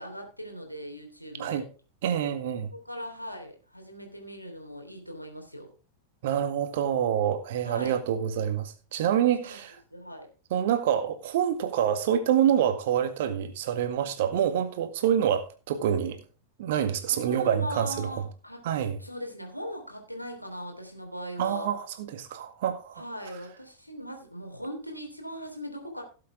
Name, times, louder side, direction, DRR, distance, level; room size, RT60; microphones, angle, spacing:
voice 1, 0.0-1.6 2.7-5.7 7.6-8.0 9.2-9.6 9.9-10.3 17.1-18.6 19.0-21.7 22.9-26.0, equal, 90° left, 3.2 m, -39 dB
voice 2, 2.0-2.7 6.2-9.7 10.5-16.2 16.6-18.1 18.6-19.0 21.4-23.0, right 9 dB, 55° right, 1.9 m, -26 dB
17.0 x 7.7 x 3.6 m
figure-of-eight pair, 90°, 0 cm